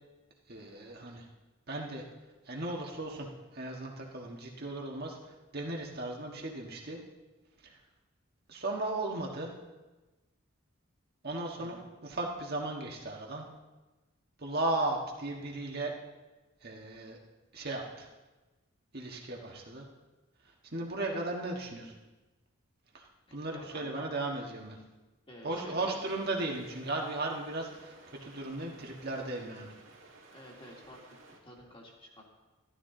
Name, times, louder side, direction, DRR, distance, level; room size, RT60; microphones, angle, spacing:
voice 1, 0.5-1.3 1.7-2.0 2.4-7.0 7.6-7.8 8.5-9.5 11.2-11.8 12.0-13.5 14.4-15.9 16.6-17.2 17.5-18.1 18.9-19.9 20.4-22.0 22.9-24.8 25.4-29.7, right 2 dB, 50° right, 0 dB, 1.5 m, -36 dB
voice 2, 23.3-24.1 25.3-26.0 28.7-28.9 30.3-31.0 31.3-32.2, left 1 dB, 25° left, -2 dB, 2.2 m, -51 dB
sound 1, 26.0-31.4, right 3 dB, 65° right, 2.2 m, -56 dB
13.0 x 12.5 x 3.8 m, 1.2 s
head